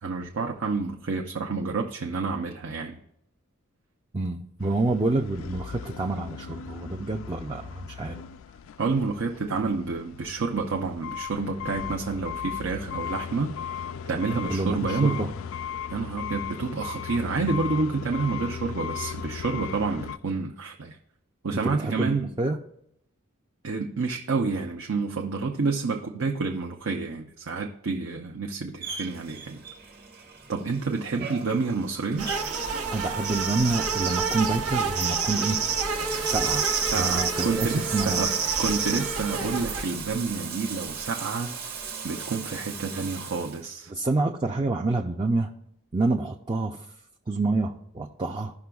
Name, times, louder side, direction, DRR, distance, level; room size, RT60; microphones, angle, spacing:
voice 1, 0.0-3.0 8.8-13.6 14.1-15.3 15.9-21.0 21.4-22.3 23.6-29.6 30.5-32.3 36.9-38.3 38.6-43.9, right 4 dB, 65° right, 2 dB, 0.6 m, -29 dB
voice 2, 4.1-8.2 14.4-15.3 21.5-22.6 31.2-31.3 32.9-35.6 36.3-36.7 37.0-38.3 43.9-45.5 45.9-46.9 47.3-48.5, right 2 dB, 20° right, 1 dB, 0.4 m, -28 dB
sound 1, 4.6-20.2, left 8 dB, 65° left, 0.4 m, -37 dB
Bathtub (filling or washing), 28.8-43.6, right 6 dB, 45° right, 1.3 m, -39 dB
sound 2, 32.2-39.8, right 5 dB, 85° right, 1.1 m, -28 dB
16.0 x 5.9 x 2.3 m, 0.76 s
head